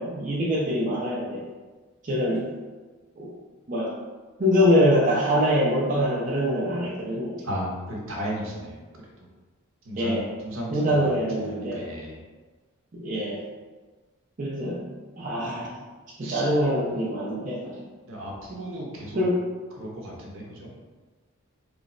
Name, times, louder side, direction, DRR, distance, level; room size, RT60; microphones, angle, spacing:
voice 1, 0.0-1.5 2.1-2.5 3.2-3.3 3.7-3.9 4.4-7.4 10.0-10.3 10.7-11.8 12.9-13.4 14.4-14.9 15.2-15.7 16.2-17.7 19.2-19.4, equal, 35° right, -6 dB, 0.5 m, -24 dB
voice 2, 7.4-8.8 9.8-12.2 16.2-16.5 18.1-19.2 19.8-20.7, equal, 60° right, -2 dB, 0.7 m, -35 dB
3.2 x 2.0 x 3.8 m, 1.3 s
head